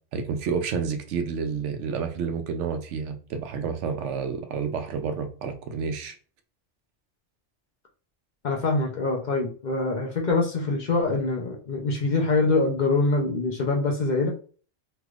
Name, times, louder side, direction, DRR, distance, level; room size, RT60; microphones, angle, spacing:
voice 1, 0.1-6.1, right 6 dB, 80° right, 0.9 m, -30 dB
voice 2, 8.4-14.3, left 3 dB, 50° left, 0.6 m, -24 dB
3.3 x 3.0 x 2.3 m
omnidirectional pair, 1.2 m